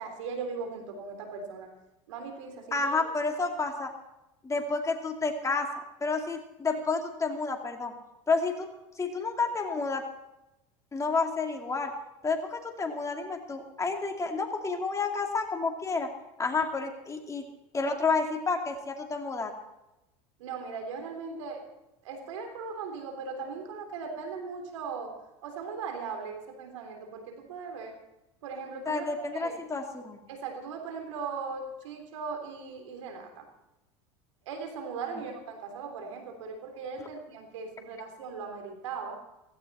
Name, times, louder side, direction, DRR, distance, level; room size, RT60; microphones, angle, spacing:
voice 1, 0.0-1.7 2.1-2.9 20.4-21.6 22.0-25.1 25.4-28.0 28.4-29.5 30.3-33.5 34.5-39.2, right 5 dB, 85° right, 5 dB, 3.6 m, -38 dB
voice 2, 2.7-3.9 4.4-5.7 6.0-7.9 8.3-8.7 9.0-10.0 10.9-11.9 12.2-16.1 16.4-17.4 17.7-19.5 28.9-30.2, left 4 dB, 20° left, 3 dB, 2.5 m, -30 dB
16.5 x 16.0 x 4.3 m, 0.93 s
supercardioid pair, 100°, 16 cm